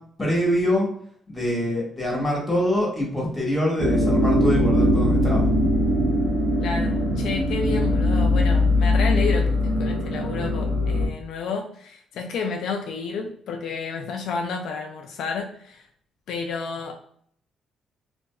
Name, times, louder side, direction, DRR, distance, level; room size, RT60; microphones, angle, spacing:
voice 1, 0.2-0.9 1.3-5.5, left 1 dB, 15° left, -3 dB, 1.3 m, -24 dB
sound 1, 3.8-11.1, left 1 dB, 65° right, 0.6 m, -21 dB
voice 2, 6.6-15.9 16.3-17.0, left 4 dB, 80° left, 3 dB, 0.3 m, -31 dB
2.7 x 2.5 x 2.2 m, 0.63 s
cardioid pair, 90°, 0 cm